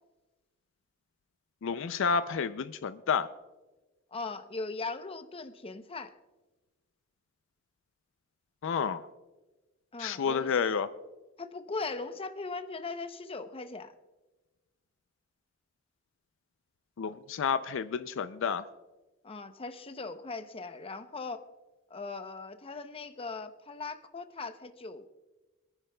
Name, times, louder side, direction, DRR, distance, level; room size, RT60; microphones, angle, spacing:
voice 1, 1.6-3.3 8.6-9.0 10.0-10.9 17.0-18.6, left 6 dB, 65° left, 12 dB, 0.4 m, -30 dB
voice 2, 4.1-6.1 9.9-10.6 11.4-13.9 19.2-21.4 21.9-25.1, left 3 dB, 30° left, 9 dB, 0.7 m, -39 dB
26.0 x 10.0 x 2.2 m, 1.2 s
head